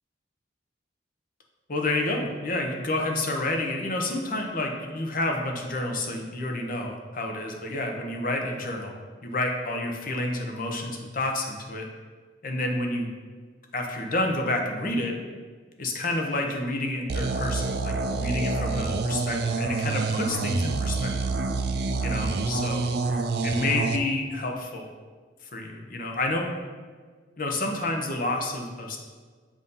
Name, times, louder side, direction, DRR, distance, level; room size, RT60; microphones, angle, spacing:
voice 1, 1.7-8.9 9.2-11.9 12.4-13.1 13.7-15.1 15.8-21.3 22.0-22.9 23.4-24.9 25.5-26.5 27.4-29.0, left 2 dB, 50° left, 2 dB, 0.8 m, -29 dB
sound 1, 17.1-24.0, right 3 dB, 60° right, 0.4 m, -27 dB
7.3 x 2.7 x 5.5 m, 1.5 s
head